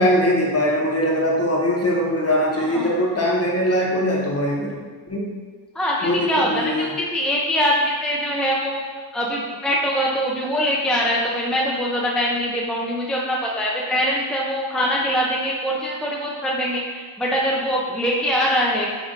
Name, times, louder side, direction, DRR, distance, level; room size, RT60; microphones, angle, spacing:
voice 1, 0.0-4.8 5.1-5.3 6.0-6.9, equal, 30° left, -3 dB, 1.0 m, -21 dB
voice 2, 2.5-3.0 5.7-8.8 9.1-18.9, equal, ahead, -4 dB, 0.5 m, -23 dB
5.1 x 2.5 x 3.9 m, 1.5 s
wide cardioid pair, 70°, 46 cm